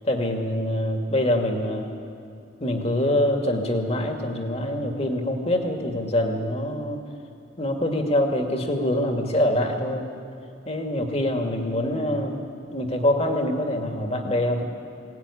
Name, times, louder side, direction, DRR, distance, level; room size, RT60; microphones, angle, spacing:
voice 1, 0.0-1.9 2.6-7.0 7.6-10.1 10.7-12.4 12.7-14.6, left 1 dB, 35° left, 4 dB, 2.3 m, -24 dB
21.5 x 18.5 x 10.0 m, 2.5 s
head